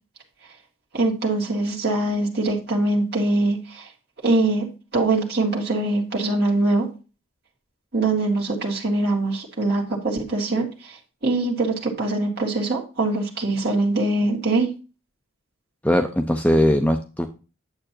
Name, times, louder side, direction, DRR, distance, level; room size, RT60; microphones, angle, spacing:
voice 1, 0.9-3.9 4.2-4.7 4.9-6.9 7.9-11.0 11.2-14.7, right 2 dB, 50° right, -2 dB, 2.0 m, -23 dB
voice 2, 15.8-17.3, left 1 dB, 5° left, 6 dB, 0.5 m, -20 dB
8.9 x 7.6 x 2.8 m, 0.32 s
head